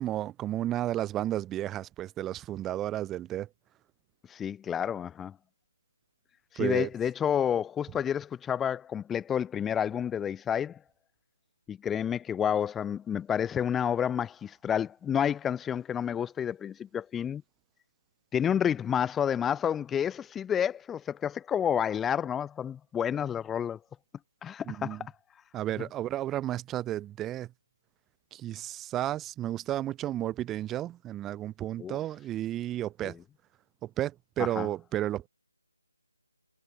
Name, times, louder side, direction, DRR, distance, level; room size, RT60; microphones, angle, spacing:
voice 1, 0.0-3.5 6.6-6.9 24.7-25.1 25.5-27.5 28.3-33.2 33.8-35.3, right 13 dB, 10° right, 3.3 m, -32 dB
voice 2, 4.3-5.4 6.5-10.8 11.7-17.4 18.3-23.8 24.4-25.1 31.8-32.0 33.0-33.1 34.4-34.7, left 8 dB, 5° left, 5.6 m, -30 dB
figure-of-eight pair, 160°, 0 cm